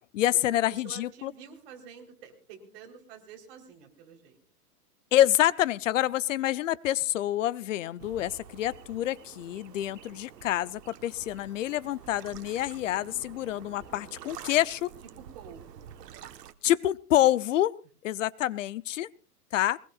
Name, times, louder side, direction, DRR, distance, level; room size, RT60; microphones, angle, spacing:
voice 1, 0.1-1.3 5.1-14.9 16.6-17.8 18.0-19.1 19.5-19.8, left 13 dB, 55° left, 18 dB, 0.7 m, -27 dB
voice 2, 0.7-4.4 15.2-15.9, right 7 dB, 40° right, 3 dB, 4.0 m, -49 dB
sound 1, 8.0-16.5, right 9 dB, 80° right, 1.4 m, -48 dB
22.0 x 20.0 x 2.4 m, 0.37 s
hypercardioid pair, 155°, 47 cm